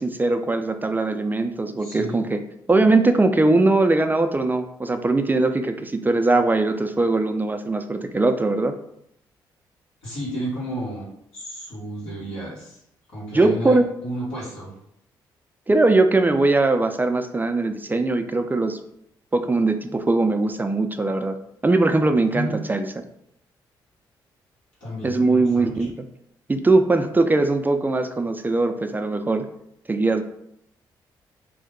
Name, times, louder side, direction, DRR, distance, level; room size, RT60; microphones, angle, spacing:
voice 1, 0.0-2.4 2.7-8.7 13.3-13.8 15.7-18.8 19.3-21.3 21.6-22.9 25.0-25.9 26.5-29.5 29.9-30.2, right 2 dB, 20° right, 7 dB, 0.3 m, -20 dB
voice 2, 1.8-2.2 10.0-11.1 11.3-12.8 13.1-14.7 22.3-22.6 24.8-25.7, right 1 dB, 85° left, -7 dB, 1.5 m, -32 dB
2.7 x 2.1 x 3.7 m, 0.75 s
supercardioid pair, 55°, 9 cm